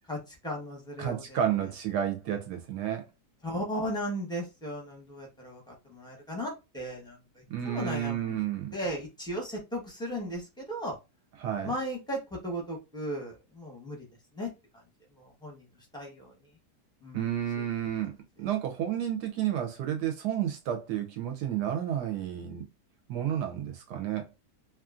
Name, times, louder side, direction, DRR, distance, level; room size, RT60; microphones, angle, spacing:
voice 1, 0.1-1.4 3.4-8.4 8.7-10.9 11.6-14.1 14.3-14.5 15.2-15.7 15.9-16.3 17.0-17.3, equal, 5° left, 0.6 m, -36 dB
voice 2, 1.0-3.1 7.5-8.7 11.4-11.7 17.1-18.1 18.4-22.7 23.1-24.5, right 10 dB, 75° right, 1.1 m, -31 dB
2.9 x 2.4 x 2.4 m
omnidirectional pair, 1.8 m